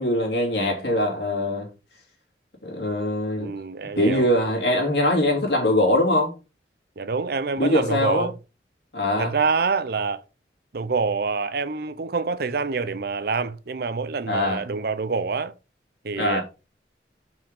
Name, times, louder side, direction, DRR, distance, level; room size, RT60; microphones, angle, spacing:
voice 1, 0.0-1.7 2.6-3.5 3.9-6.3 7.6-8.3 8.9-9.3 14.3-14.6 16.2-16.4, left 1 dB, 65° left, 2.9 m, -22 dB
voice 2, 3.4-4.3 7.0-8.3 9.2-10.2 10.7-15.5 16.0-16.4, right 4 dB, 55° right, 0.6 m, -26 dB
6.0 x 5.3 x 5.0 m
head